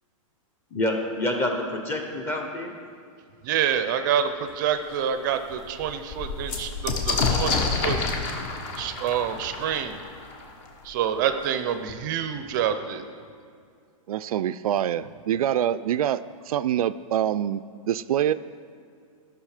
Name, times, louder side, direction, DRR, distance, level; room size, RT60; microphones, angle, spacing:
voice 1, 0.7-2.7, left 1 dB, 15° left, 3 dB, 0.9 m, -27 dB
voice 2, 3.4-8.0 8.8-10.0 10.8-13.0, right 9 dB, 35° right, 9 dB, 0.5 m, -27 dB
sound 1, 4.5-4.6 5.0-5.1 5.4-10.9 11.9-12.0 12.2-12.9, left 4 dB, 35° left, 1.2 m, -29 dB
voice 3, 14.1-18.3, right 10 dB, 85° right, 14 dB, 0.4 m, -25 dB
13.5 x 6.0 x 4.9 m, 2.2 s
hypercardioid pair, 160°, 18 cm